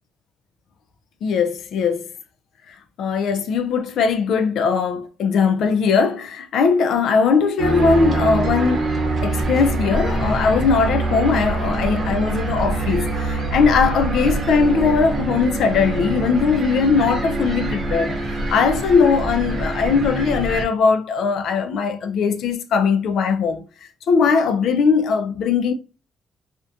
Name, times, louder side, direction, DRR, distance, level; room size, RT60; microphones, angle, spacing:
voice 1, 1.2-2.1 2.7-23.6 24.1-25.7, left 5 dB, 70° left, 0.4 m, -20 dB
sound 1, 7.6-20.6, right 2 dB, 45° right, 0.7 m, -24 dB
2.4 x 2.1 x 2.5 m
cardioid pair, 90°, 0 cm